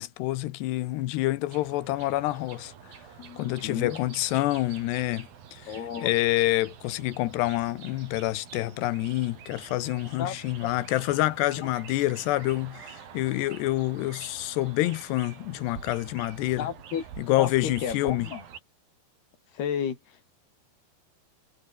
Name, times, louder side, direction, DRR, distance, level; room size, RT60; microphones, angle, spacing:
voice 1, 0.0-2.7 3.4-16.7 17.2-18.3, left 17 dB, 85° left, 3.1 m, -27 dB
sound 1, 1.5-18.6, right 8 dB, 65° right, 4.3 m, -47 dB
voice 2, 3.2-4.0 5.7-6.1 10.2-10.4 10.6-10.7 11.6-11.7 16.6-17.0 17.4-18.4 19.5-20.3, left 8 dB, 70° left, 5.7 m, -33 dB
omnidirectional pair, 4.7 m